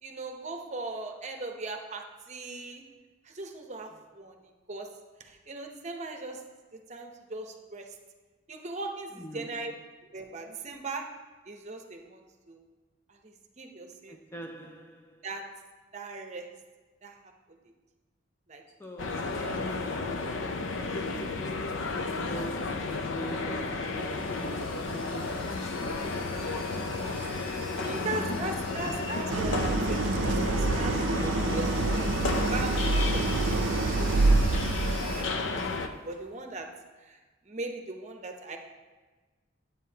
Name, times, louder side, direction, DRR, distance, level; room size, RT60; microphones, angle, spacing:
voice 1, 0.0-2.8 3.2-4.4 4.7-4.9 5.2-6.4 6.9-7.9 8.5-9.7 10.1-11.0 11.5-12.2 12.5-12.6 13.1-14.2 15.2-15.4 15.9-16.5 17.0-17.2 18.5-18.6 27.8-31.0 31.6-31.7 32.5-36.7 37.0-37.2 37.4-38.6, right 2 dB, 35° right, 0.7 m, -39 dB
voice 2, 9.1-9.8 14.1-15.3 18.8-21.9 22.2-28.1 28.7-29.2 31.0-32.4, right 1 dB, 10° left, 0.4 m, -44 dB
sound 1, 19.0-35.9, left 3 dB, 75° left, 0.5 m, -32 dB
sound 2, 23.9-30.2 30.5-30.6 31.2-35.2, left 1 dB, 50° left, 2.4 m, -46 dB
Idling, 29.3-35.4, right 3 dB, 80° right, 0.5 m, -27 dB
9.2 x 8.5 x 2.8 m
head